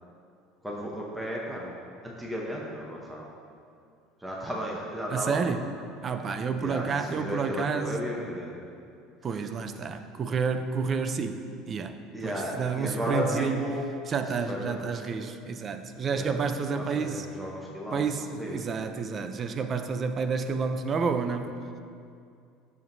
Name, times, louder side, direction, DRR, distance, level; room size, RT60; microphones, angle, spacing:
voice 1, 0.6-1.8 2.0-3.3 4.2-5.6 6.5-8.5 12.1-14.1 14.5-14.8 16.1-16.4 16.7-18.0 18.4-18.6, equal, 5° right, -3 dB, 0.8 m, -34 dB
voice 2, 5.1-5.7 6.0-8.0 9.2-12.0 12.2-13.6 14.1-17.3 17.9-21.6, right 5 dB, 25° right, 8 dB, 0.4 m, -30 dB
12.5 x 7.1 x 2.6 m, 2.4 s
cardioid pair, 165°, 0 cm